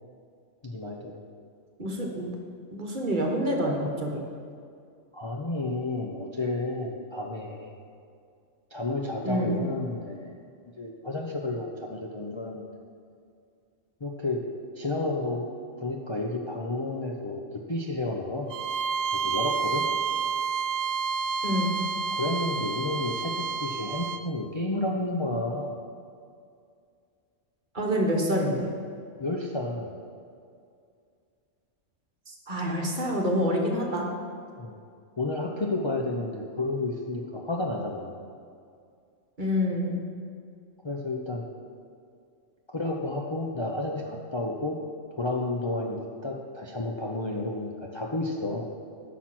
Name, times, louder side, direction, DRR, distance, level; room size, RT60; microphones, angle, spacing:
voice 1, 0.6-1.1 5.1-7.7 8.7-10.3 10.8-12.7 14.0-14.4 14.8-15.5 15.8-17.4 17.7-18.5 19.1-19.8 22.1-23.3 23.6-25.7 29.2-29.9 34.6-34.7 35.2-38.1 40.8-41.4 42.7-44.8 45.2-48.7, left 2 dB, 30° left, -1 dB, 0.6 m, -31 dB
voice 2, 1.8-2.3 2.7-4.2 9.2-9.7 21.4-21.7 27.7-28.7 32.3-34.1 39.4-40.0, equal, 40° right, 0 dB, 1.4 m, -27 dB
Bowed string instrument, 18.5-24.2, right 5 dB, 65° right, 0.7 m, -29 dB
10.5 x 6.1 x 6.1 m, 2.3 s
omnidirectional pair, 1.2 m